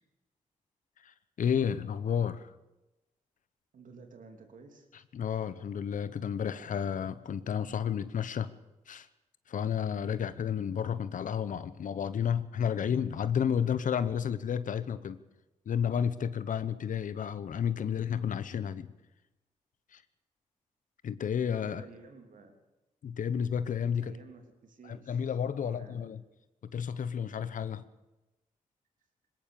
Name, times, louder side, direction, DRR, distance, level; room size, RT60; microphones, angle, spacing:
voice 1, 1.0-2.5 5.1-8.5 8.9-9.1 9.5-15.2 15.7-18.9 19.9-20.0 21.0-21.8 23.0-24.2 24.9-26.2 26.6-27.8, left 8 dB, 75° left, 14 dB, 1.0 m, -31 dB
voice 2, 3.7-4.9 21.6-22.6 24.0-25.3 25.6-26.0, right 4 dB, 80° right, 5 dB, 3.3 m, -52 dB
20.5 x 18.5 x 7.0 m, 1.0 s
cardioid pair, 55°, 13 cm